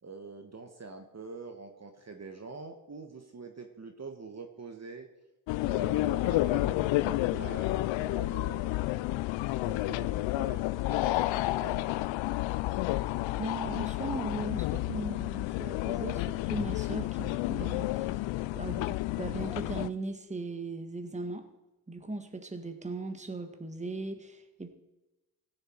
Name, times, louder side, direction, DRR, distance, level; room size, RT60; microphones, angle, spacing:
voice 1, 0.0-5.1 5.6-9.3 9.7-10.6 10.9-12.0, right 3 dB, 35° right, 5 dB, 1.5 m, -45 dB
sound 1, 5.5-19.9, left 17 dB, 70° left, 0.5 m, -30 dB
voice 2, 13.3-18.2 18.5-21.5 21.9-24.7, right 2 dB, 15° right, 6 dB, 1.6 m, -38 dB
16.5 x 6.7 x 4.6 m, 1.0 s
hypercardioid pair, 45°, 47 cm